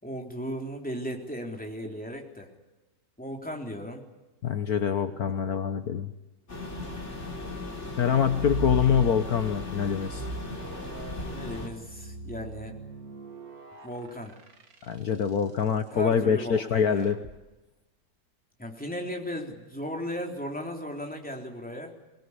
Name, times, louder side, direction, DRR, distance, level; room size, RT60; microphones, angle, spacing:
voice 1, 0.0-2.5 3.2-4.0 11.2-12.8 13.8-14.4 15.9-17.1 18.6-21.9, equal, 5° left, 1 dB, 3.6 m, -36 dB
voice 2, 4.4-6.1 8.0-10.3 14.8-17.2, left 7 dB, 60° left, 8 dB, 1.5 m, -25 dB
sound 1, 6.5-11.7, left 2 dB, 40° left, 4.8 m, -37 dB
sound 2, 8.1-9.5 10.0-15.5 17.0-17.4, right 4 dB, 60° right, 2.2 m, -39 dB
23.5 x 21.0 x 9.9 m, 1.1 s
omnidirectional pair, 1.9 m